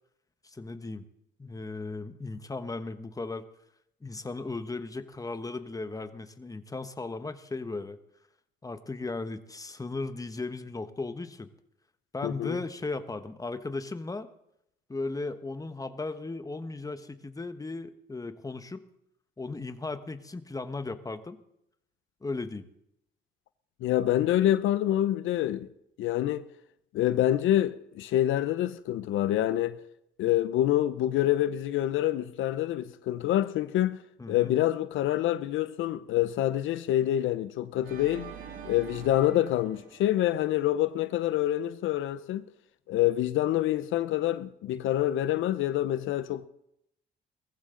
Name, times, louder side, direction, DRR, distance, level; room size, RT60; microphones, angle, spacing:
voice 1, 0.4-1.1 1.4-3.4 4.0-8.0 8.6-11.5 12.1-14.3 14.9-18.8 19.4-21.4 22.2-22.7 34.2-34.5, left 3 dB, 15° left, 1.2 m, -36 dB
voice 2, 12.2-12.6 23.8-25.7 26.0-26.4 26.9-29.8 30.2-34.0 34.3-38.3 38.6-42.4 42.9-46.5, left 13 dB, 85° left, 0.7 m, -26 dB
Organ, 37.8-40.9, right 7 dB, 85° right, 2.1 m, -45 dB
19.5 x 14.5 x 3.8 m
cardioid pair, 90°, 20 cm